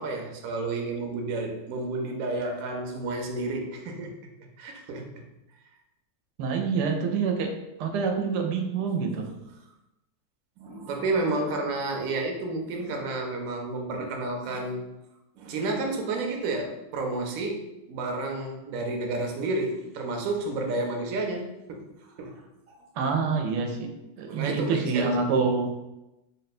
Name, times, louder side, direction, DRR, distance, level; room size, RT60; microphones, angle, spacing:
voice 1, 0.0-4.1 4.6-5.2 10.6-14.8 15.3-21.9 22.2-22.8 24.3-25.3, right 2 dB, 65° right, 2 dB, 1.0 m, -31 dB
voice 2, 6.4-7.5 7.8-9.2 23.0-23.9 24.2-25.7, right 5 dB, 90° right, 3 dB, 1.2 m, -26 dB
3.7 x 2.2 x 4.1 m, 0.93 s
omnidirectional pair, 1.7 m